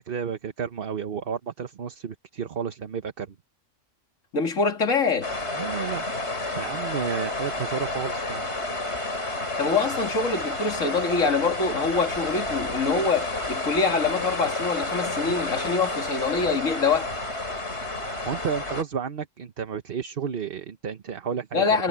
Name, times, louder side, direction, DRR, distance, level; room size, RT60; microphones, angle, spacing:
voice 1, 0.1-3.3 5.5-6.1 6.6-8.4 18.3-21.7, right 7 dB, 50° right, 1.1 m, -31 dB
voice 2, 4.3-5.3 9.6-17.1 21.5-21.9, left 4 dB, 85° left, 2.6 m, -25 dB
sound 1, 5.2-18.8, left 2 dB, 55° left, 5.3 m, -30 dB
omnidirectional pair, 1.3 m